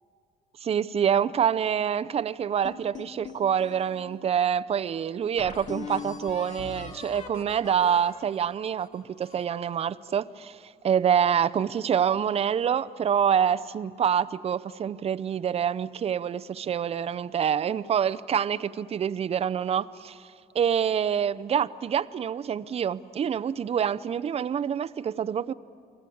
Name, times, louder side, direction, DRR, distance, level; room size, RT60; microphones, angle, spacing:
voice 1, 0.6-10.6 10.8-20.2 20.5-25.5, right 8 dB, 35° right, 0.6 m, -26 dB
sound 1, 2.6-4.2 4.8-4.9 5.4-9.6, left 5 dB, 45° left, 2.3 m, -41 dB
29.5 x 22.0 x 8.6 m
cardioid pair, 135°, 17 cm